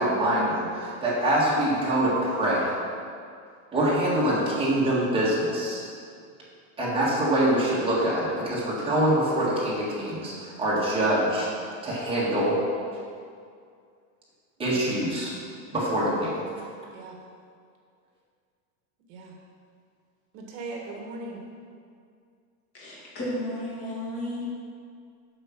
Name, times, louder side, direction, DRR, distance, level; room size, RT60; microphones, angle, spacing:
voice 1, 0.0-2.7 3.7-5.8 6.8-11.5 11.8-12.6 14.6-15.3 15.7-16.4, right 1 dB, 10° right, -7 dB, 1.9 m, -24 dB
voice 2, 20.3-21.4, right 3 dB, 50° right, 0 dB, 1.6 m, -39 dB
voice 3, 22.7-24.4, left 1 dB, 30° left, -6 dB, 2.5 m, -33 dB
7.9 x 6.6 x 6.0 m, 2.3 s
supercardioid pair, 165°, 43 cm